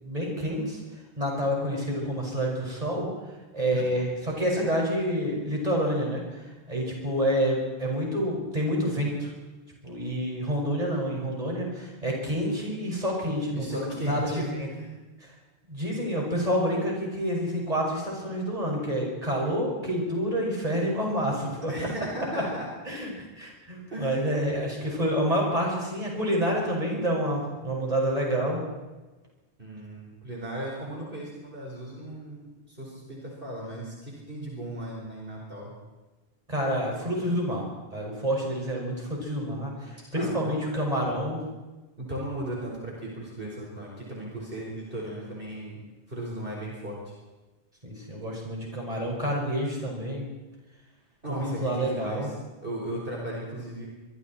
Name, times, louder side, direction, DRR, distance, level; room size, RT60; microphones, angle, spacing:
voice 1, 0.0-3.1 3.5-9.3 9.8-14.7 15.2-15.3 15.7-21.7 22.8-23.1 23.4-28.6 36.5-37.6 37.9-41.4 47.8-50.3 51.3-52.3, equal, 35° right, -2 dB, 6.0 m, -28 dB
voice 2, 13.2-14.4 14.7-15.0 21.7-22.7 23.9-24.3 29.6-35.7 40.1-40.7 42.0-45.8 46.1-47.1 51.2-52.2 52.6-53.9, right 1 dB, 55° right, -3 dB, 5.1 m, -36 dB
25.5 x 23.5 x 4.4 m, 1.2 s
omnidirectional pair, 1.1 m